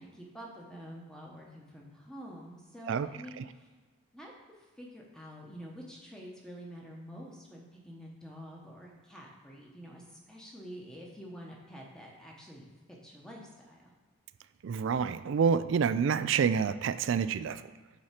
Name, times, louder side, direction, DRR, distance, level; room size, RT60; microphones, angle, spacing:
voice 1, 0.0-3.7 4.1-4.3 4.8-13.9, equal, 5° left, -2 dB, 1.0 m, -47 dB
voice 2, 14.6-17.6, right 6 dB, 60° right, 14 dB, 0.3 m, -28 dB
7.8 x 4.2 x 5.8 m, 1.4 s
head